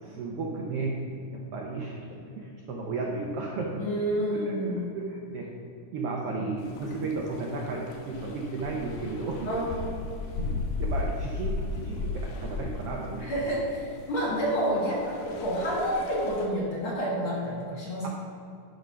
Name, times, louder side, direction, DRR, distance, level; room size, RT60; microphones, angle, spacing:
voice 1, 0.0-1.0 1.3-2.0 2.4-3.8 4.3-5.6 5.9-9.6 10.4-13.3 18.0-18.1, right 3 dB, 80° right, -2 dB, 1.3 m, -34 dB
voice 2, 3.8-4.9 6.3-6.4 9.5-10.0 13.2-18.1, equal, 50° left, -5 dB, 2.1 m, -29 dB
sound 1, 6.6-16.5, left 3 dB, 80° left, 2.4 m, -36 dB
11.0 x 3.9 x 5.6 m, 2.5 s
omnidirectional pair, 3.8 m